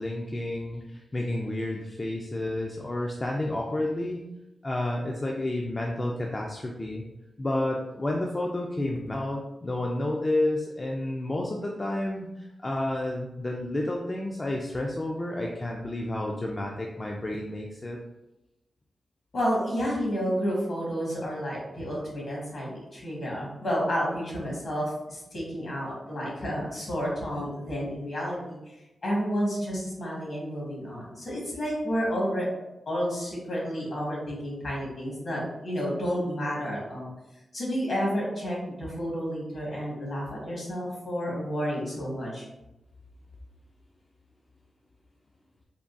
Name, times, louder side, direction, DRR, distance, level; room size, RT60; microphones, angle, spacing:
voice 1, 0.0-4.2 4.6-7.0 7.4-18.0, left 1 dB, 30° left, -1 dB, 0.3 m, -30 dB
voice 2, 19.3-28.6 29.0-32.5 32.9-37.1 37.5-42.4, equal, 60° left, -4 dB, 1.3 m, -30 dB
3.5 x 2.2 x 2.5 m, 0.95 s
wide cardioid pair, 110°, 0 cm